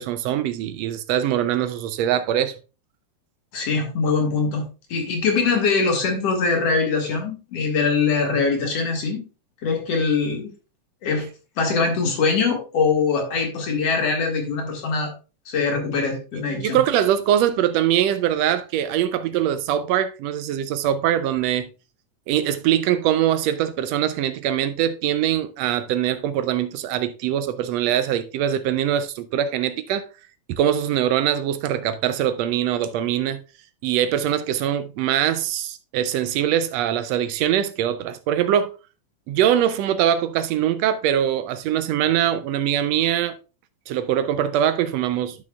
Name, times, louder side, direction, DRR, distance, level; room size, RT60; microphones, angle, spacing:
voice 1, 0.0-2.5 16.6-21.7 22.3-30.0 30.5-33.4 33.8-38.7 39.3-43.4 43.9-45.4, right 10 dB, 80° right, 1.5 m, -22 dB
voice 2, 3.5-4.6 4.9-9.2 9.6-10.5 11.0-11.3 11.6-15.1 15.5-16.8, left 4 dB, 60° left, 2.6 m, -22 dB
12.0 x 6.2 x 2.3 m
omnidirectional pair, 3.4 m